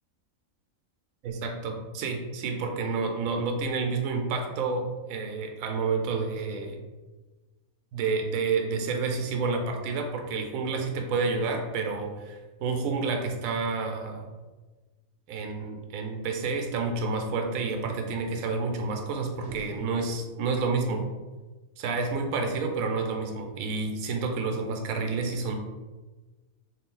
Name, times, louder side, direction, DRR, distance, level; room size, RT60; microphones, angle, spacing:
voice 1, 1.2-6.8 7.9-14.3 15.3-21.1 21.8-25.6, right 4 dB, 75° right, 4 dB, 1.0 m, -29 dB
sound 1, 19.4-20.6, right 2 dB, 55° right, 0.7 m, -46 dB
3.4 x 2.4 x 3.7 m, 1.2 s
omnidirectional pair, 1.5 m